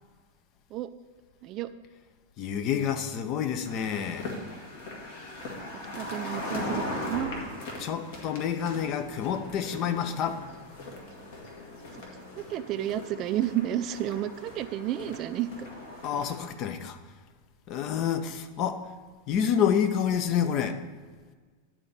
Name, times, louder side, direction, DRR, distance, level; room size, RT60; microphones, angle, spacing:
voice 1, 2.4-4.3 7.8-10.4 16.0-17.0 17.7-18.8 19.3-20.8, left 8 dB, 40° left, 8 dB, 0.6 m, -28 dB
sound 1, 3.6-16.5, left 1 dB, 55° left, 1.7 m, -39 dB
voice 2, 5.9-7.3 12.4-15.7, right 12 dB, 35° right, 12 dB, 0.4 m, -31 dB
9.8 x 4.3 x 6.8 m, 1.5 s
figure-of-eight pair, 90°, 0 cm